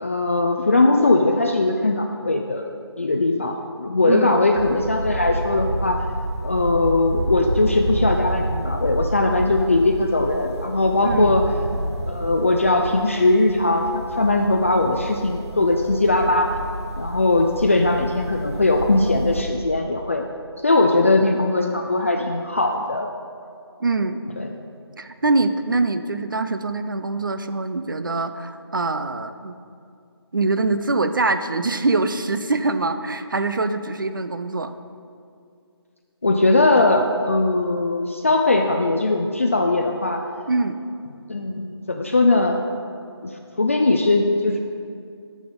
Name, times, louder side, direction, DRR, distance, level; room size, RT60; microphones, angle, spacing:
voice 1, 0.0-2.7 3.0-6.0 6.4-11.4 12.1-16.6 17.0-20.3 20.6-23.1 24.4-24.5 36.2-40.2 41.3-42.6 43.2-44.6, left 2 dB, 30° left, 3 dB, 0.4 m, -20 dB
voice 2, 4.0-4.4 11.0-11.3 23.8-24.3 25.0-29.6 30.3-34.7 40.5-40.8, right 3 dB, 50° right, 9 dB, 0.6 m, -23 dB
sound 1, 4.6-19.4, right 1 dB, 85° right, 1.4 m, -29 dB
11.5 x 6.2 x 5.2 m, 2.4 s
figure-of-eight pair, 160°, 14 cm